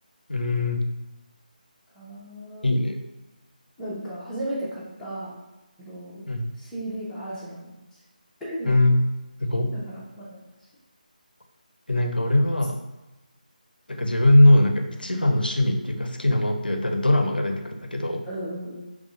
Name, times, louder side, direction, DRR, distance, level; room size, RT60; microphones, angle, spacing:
voice 1, 0.3-0.8 2.6-3.0 6.3-6.5 8.6-9.0 9.4-9.7 11.9-12.8 13.9-18.2, left 1 dB, 85° left, 4 dB, 0.5 m, -21 dB
voice 2, 1.9-2.8 3.8-5.4 5.8-6.3 6.6-7.8 8.4-8.7 9.7-10.4 18.3-18.8, right 1 dB, 5° left, -11 dB, 0.7 m, -35 dB
3.7 x 3.0 x 2.4 m, 1.1 s
figure-of-eight pair, 155°, 5 cm